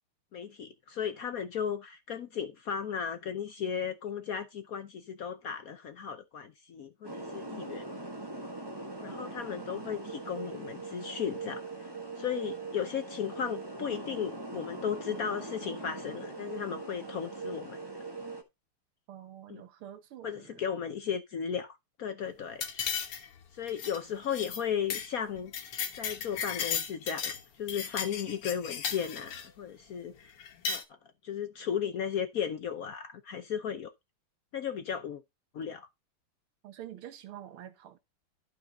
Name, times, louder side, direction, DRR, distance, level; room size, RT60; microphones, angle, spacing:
voice 1, 0.3-8.0 9.0-11.9 12.2-17.8 19.5-19.6 20.2-22.6 23.5-25.5 26.0-30.3 30.7-30.8 31.2-33.9 34.5-35.2 35.5-35.9, left 8 dB, 65° left, 0.8 m, -35 dB
sound 1, 7.0-18.4, right 3 dB, 15° right, 1.2 m, -41 dB
voice 2, 19.1-20.6 36.6-38.0, right 11 dB, 75° right, 2.0 m, -47 dB
sound 2, 22.6-23.4 23.7-24.0 24.3-24.6 24.9-25.1 25.4-27.4 27.7-29.5 30.4-30.8, left 7 dB, 85° left, 2.1 m, -35 dB
12.0 x 5.3 x 4.1 m
omnidirectional pair, 2.4 m